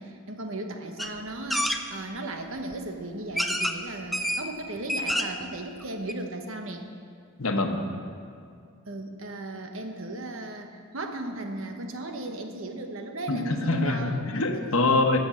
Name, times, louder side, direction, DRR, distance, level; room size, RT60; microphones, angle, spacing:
voice 1, 0.0-6.9 8.9-14.3 14.6-14.7, right 2 dB, 70° right, 5 dB, 1.1 m, -36 dB
sound 1, 1.0-1.1 1.5-1.8 2.7-2.8 3.4-3.8 4.1-4.4 4.8-5.4 5.8-5.9 6.1-6.2, equal, ahead, 0.4 m, -27 dB
voice 2, 7.4-7.8 13.3-15.2, left 2 dB, 80° left, 4 dB, 1.1 m, -24 dB
14.5 x 6.1 x 7.3 m, 2.3 s
head